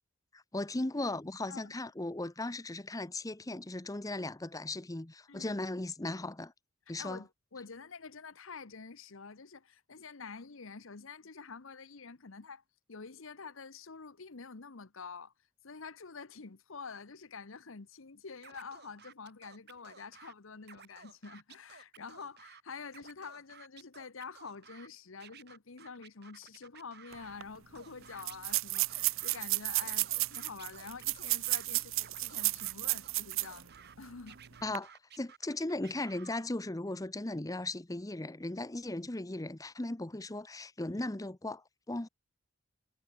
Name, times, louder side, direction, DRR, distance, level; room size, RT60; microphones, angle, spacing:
voice 1, 0.3-6.5 6.9-7.2 34.6-42.1, left 2 dB, 15° left, 0.8 m, -37 dB
voice 2, 7.0-12.6 12.9-15.3 15.6-33.7 34.0-34.4, left 5 dB, 70° left, 1.0 m, -47 dB
Scratching (performance technique), 18.4-20.3 20.6-22.6 22.9-24.9 25.2-27.4 27.8-29.4 29.7-31.7 32.0-34.0 34.3-36.4, right 7 dB, 50° right, 7.9 m, -55 dB
sound 1, 27.1-27.2 27.4-27.5 28.2-33.6 34.0-34.1 34.6-34.8, right 20 dB, 70° right, 0.6 m, -32 dB
head